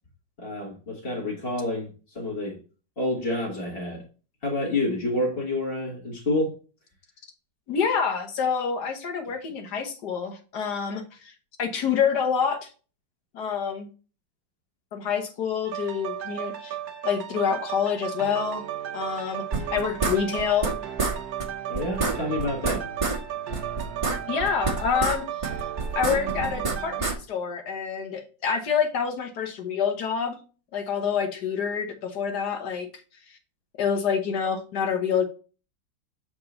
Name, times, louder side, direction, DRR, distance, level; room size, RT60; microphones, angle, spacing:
voice 1, 0.4-2.6 3.0-4.0 4.4-6.5 21.7-22.9, left 1 dB, 30° left, 1.9 m, -28 dB
voice 2, 7.7-11.3 11.6-12.7 13.3-13.9 14.9-16.8 17.0-18.7 18.9-20.7 24.3-25.3 26.0-30.4 30.7-32.9 33.8-35.2, left 7 dB, 65° left, 1.7 m, -27 dB
sound 1, 15.6-27.0, right 10 dB, 60° right, 1.3 m, -34 dB
sound 2, 19.5-20.7 21.0-21.1 21.4-21.5 21.7-23.2 23.5-25.2 25.4-27.1, right 3 dB, 20° right, 1.2 m, -27 dB
6.9 x 4.7 x 3.9 m
omnidirectional pair, 2.0 m